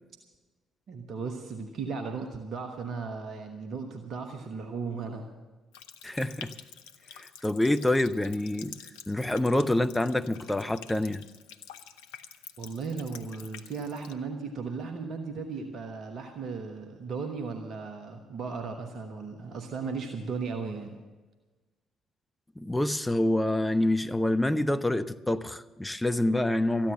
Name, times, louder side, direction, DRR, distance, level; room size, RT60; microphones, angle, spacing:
voice 1, 0.9-5.3 12.6-21.0, right 4 dB, 55° right, 4 dB, 1.2 m, -36 dB
Water tap faucet, 5.7-14.1, left 8 dB, 75° left, 0.6 m, -48 dB
voice 2, 6.0-6.5 7.1-8.7 9.1-11.2 22.6-26.9, left 1 dB, 10° left, 10 dB, 0.7 m, -27 dB
14.0 x 10.5 x 7.7 m, 1.2 s
figure-of-eight pair, 45°, 0 cm